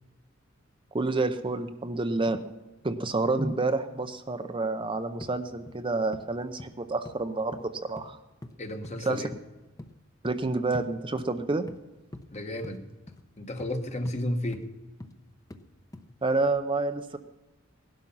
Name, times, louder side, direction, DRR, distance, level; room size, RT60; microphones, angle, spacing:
voice 1, 0.9-2.4 2.8-8.2 9.0-9.2 10.2-11.7 16.2-17.2, right 3 dB, 25° right, 8 dB, 0.7 m, -29 dB
sound 1, 5.2-5.4 5.7-5.9 6.1-6.3 6.6-6.8 7.1-7.2 7.5-8.1 8.4-8.6 8.8-9.1 9.3-9.5 9.8-9.9 10.2-10.4 10.7-10.9 11.2-11.8 12.1-12.3 12.6-12.8 13.1-13.2 13.6-13.8 14.1-14.2 14.5-14.6 15.0-15.2 15.5-15.6 15.9-16.1 16.4-16.5, left 1 dB, 15° left, 0.8 m, -44 dB
voice 2, 8.6-9.3 12.3-12.9 13.4-14.6, left 1 dB, 35° left, 6 dB, 1.3 m, -32 dB
18.0 x 12.0 x 5.6 m, 1.1 s
head